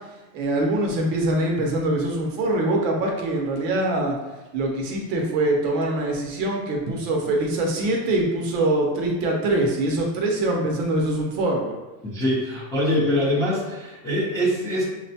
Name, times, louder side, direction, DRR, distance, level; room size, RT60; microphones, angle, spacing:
voice 1, 0.3-4.2 4.5-11.7 12.9-13.1, right 2 dB, 40° right, 0 dB, 0.6 m, -23 dB
voice 2, 12.0-14.9, left 1 dB, 5° left, -8 dB, 0.6 m, -24 dB
6.3 x 2.1 x 2.7 m, 1.1 s
supercardioid pair, 155°, 49 cm